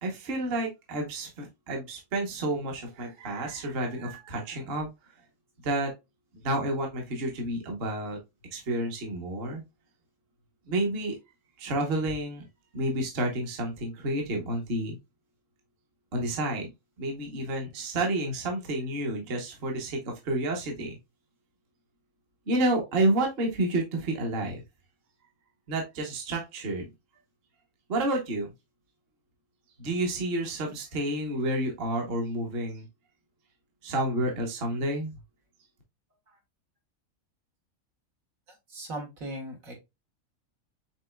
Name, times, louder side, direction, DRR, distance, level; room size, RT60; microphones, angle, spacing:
voice 1, 0.0-4.9 5.6-5.9 6.4-8.2 8.5-9.6 10.7-11.2 11.6-12.4 12.7-15.0 16.1-16.7 17.0-21.0 22.5-24.6 25.7-26.8 27.9-28.5 29.8-32.9 33.8-35.1, right 1 dB, 45° right, 2 dB, 1.2 m, -30 dB
voice 2, 38.7-39.7, right 1 dB, 70° right, 1 dB, 1.9 m, -38 dB
6.0 x 3.7 x 2.2 m, 0.22 s
omnidirectional pair, 1.5 m